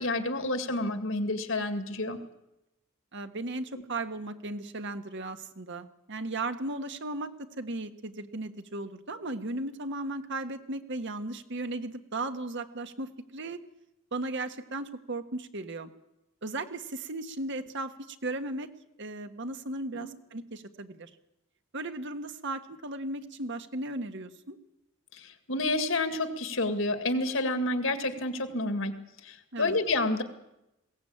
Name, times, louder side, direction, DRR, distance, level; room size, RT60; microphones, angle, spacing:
voice 1, 0.0-2.2 19.9-20.1 25.1-29.0 29.2-30.2, left 2 dB, 70° left, 9 dB, 2.1 m, -29 dB
voice 2, 3.1-7.3 7.6-13.6 14.1-15.9 16.4-18.7 19.0-21.1 21.7-24.6 29.5-29.7, right 2 dB, 60° right, 8 dB, 1.4 m, -36 dB
21.0 x 17.0 x 8.8 m, 0.91 s
head